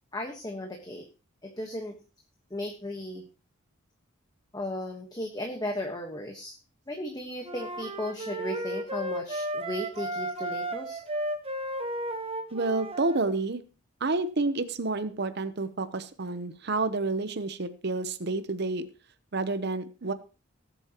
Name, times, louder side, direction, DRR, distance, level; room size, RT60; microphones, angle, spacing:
voice 1, 0.1-1.1 1.4-2.0 2.5-3.2 4.5-6.5 6.9-11.0, left 1 dB, 20° left, 3 dB, 1.3 m, -35 dB
sound 1, 7.4-13.3, right 1 dB, 30° right, 1.1 m, -34 dB
voice 2, 12.5-13.6 14.0-18.8 19.3-20.1, right 3 dB, 55° right, 11 dB, 0.8 m, -29 dB
19.0 x 7.9 x 3.0 m, 0.33 s
head